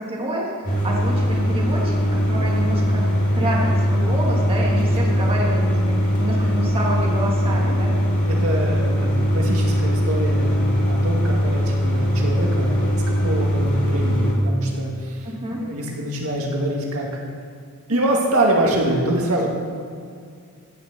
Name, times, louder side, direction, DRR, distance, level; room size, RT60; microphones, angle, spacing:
voice 1, 0.0-8.0 15.2-15.6, equal, 25° right, -3 dB, 2.0 m, -28 dB
sound 1, 0.6-14.3, equal, 35° left, 2.4 m, -20 dB
voice 2, 8.4-17.1 17.9-19.5, right 1 dB, 75° right, -1 dB, 2.0 m, -24 dB
16.0 x 5.8 x 6.8 m, 2.2 s
head